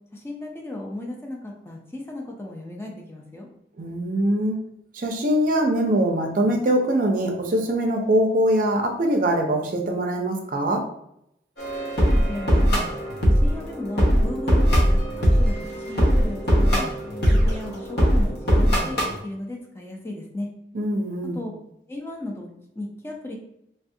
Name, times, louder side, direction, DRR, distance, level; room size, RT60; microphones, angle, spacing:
voice 1, 0.1-3.5 12.3-12.7 13.3-16.9 17.2-20.5 21.3-21.5 21.9-22.5 22.7-23.3, left 1 dB, 15° left, -1 dB, 0.5 m, -35 dB
voice 2, 3.8-4.6 4.9-10.9 20.7-21.4, right 1 dB, 50° right, 3 dB, 0.5 m, -22 dB
sound 1, 11.6-19.2, equal, 65° left, 0.9 m, -20 dB
3.3 x 2.3 x 2.6 m, 0.77 s
head